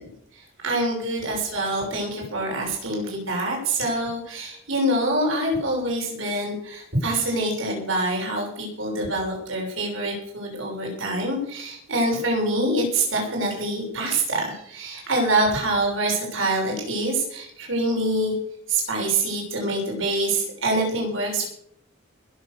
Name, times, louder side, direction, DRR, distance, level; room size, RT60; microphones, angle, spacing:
voice 1, 0.3-18.3 18.7-21.5, right 1 dB, 65° right, -1 dB, 6.5 m, -25 dB
21.0 x 7.6 x 6.8 m, 0.67 s
head